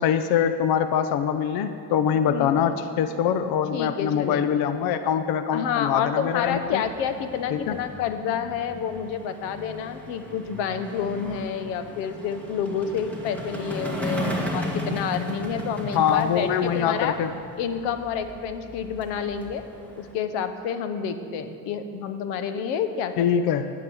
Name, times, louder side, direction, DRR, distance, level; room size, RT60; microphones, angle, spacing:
voice 1, 0.0-6.8 7.5-7.8 15.9-17.3 23.2-23.7, left 8 dB, 60° left, 10 dB, 0.6 m, -24 dB
voice 2, 2.3-2.8 3.7-4.6 5.5-17.2 17.6-19.7 20.0-23.3, left 7 dB, 85° left, 9 dB, 1.0 m, -29 dB
sound 1, 6.3-20.1, equal, 5° left, 1.7 m, -36 dB
10.5 x 9.9 x 6.9 m, 2.5 s
cardioid pair, 130°, 42 cm